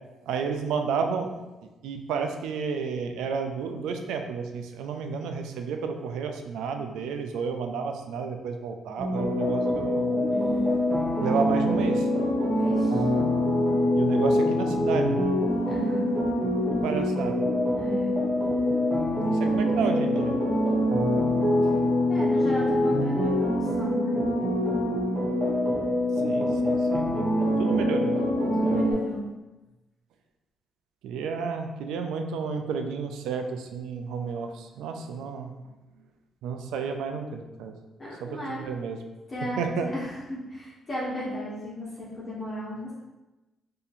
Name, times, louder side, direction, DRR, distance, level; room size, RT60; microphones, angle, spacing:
voice 1, 0.3-1.3 1.8-10.2 11.2-12.1 13.9-15.3 16.7-17.4 19.2-20.4 26.2-28.9 31.0-35.5 36.4-37.8 38.2-39.0 39.6-39.9, right 5 dB, 90° right, 5 dB, 0.4 m, -31 dB
sound 1, 9.0-28.9, left 1 dB, 25° right, 1.0 m, -24 dB
voice 2, 10.3-10.7 12.5-13.0 15.7-16.1 17.8-18.1 21.0-21.4 22.1-24.1 28.6-29.3 38.0-38.6 39.3-42.9, equal, 35° left, -8 dB, 1.2 m, -34 dB
2.7 x 2.6 x 4.1 m, 1.1 s
cardioid pair, 90°, 0 cm